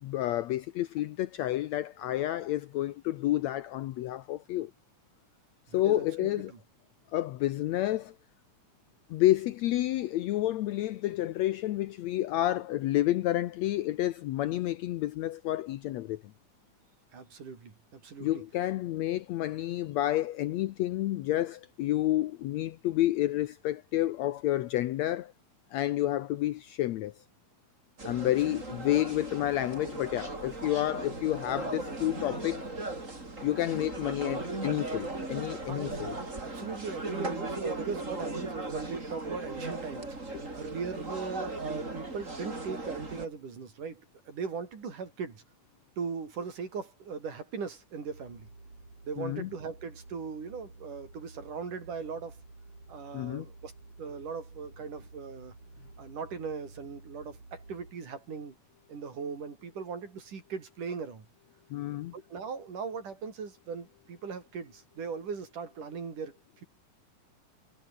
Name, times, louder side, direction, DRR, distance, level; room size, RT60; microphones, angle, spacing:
voice 1, 0.0-4.7 5.7-6.5 7.1-8.1 9.1-16.2 18.2-25.3 25.7-27.1 28.0-32.7 33.4-36.2 40.3-40.4 49.2-49.5 53.1-53.5 61.7-62.1, left 14 dB, 75° left, 1.9 m, -30 dB
voice 2, 5.7-6.6 17.1-18.4 28.2-28.6 35.7-35.9 36.4-40.2 40.5-45.4 46.0-48.5 49.0-52.4 52.9-53.7 54.0-55.6 56.0-58.6 58.9-61.3 62.1-66.3, right 5 dB, 90° right, 6.0 m, -39 dB
sound 1, 28.0-43.3, right 2 dB, 25° right, 5.0 m, -38 dB
sound 2, 48.1-57.9, right 3 dB, 60° right, 9.4 m, -52 dB
omnidirectional pair, 3.5 m